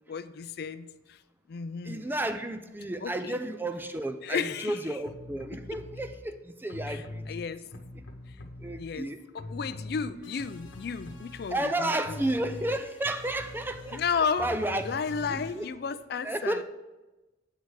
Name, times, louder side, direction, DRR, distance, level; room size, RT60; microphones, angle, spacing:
voice 1, 0.1-1.2 1.5-2.1 3.0-3.4 4.2-5.0 6.8-7.7 8.4-8.5 8.8-12.2 13.9-14.6 14.8-16.6, left 6 dB, 55° left, 14 dB, 0.4 m, -33 dB
voice 2, 1.8-7.3 7.7-8.1 8.6-9.2 11.5-14.0 14.4-14.8 15.2-15.7 16.2-16.6, right 1 dB, 10° right, 8 dB, 0.4 m, -32 dB
sound 1, 5.0-6.2 6.7-9.1 9.3-15.7, left 2 dB, 90° left, 1.0 m, -43 dB
8.1 x 6.5 x 4.8 m, 1.1 s
head